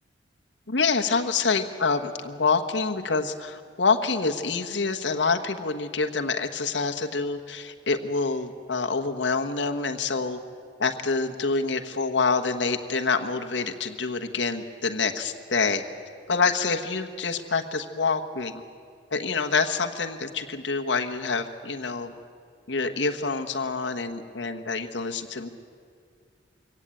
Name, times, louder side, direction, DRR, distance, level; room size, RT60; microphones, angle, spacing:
voice 1, 0.7-10.4 10.8-15.8 16.3-18.6 19.1-22.1 22.7-25.5, left 4 dB, 80° left, 6 dB, 1.3 m, -26 dB
23.5 x 17.5 x 9.0 m, 2.2 s
head